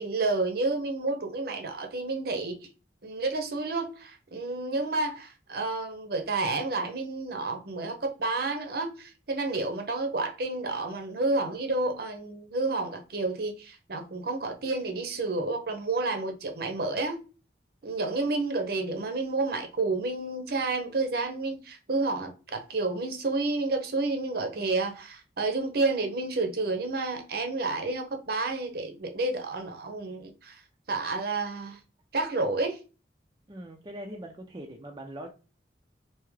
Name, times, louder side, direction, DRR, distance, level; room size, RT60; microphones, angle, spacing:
voice 1, 0.0-2.6 3.0-17.2 17.8-30.6 30.9-31.8 32.1-32.8, right 3 dB, 60° right, 0.7 m, -30 dB
voice 2, 33.5-35.3, right 1 dB, 25° right, 0.5 m, -41 dB
3.5 x 2.8 x 3.2 m
head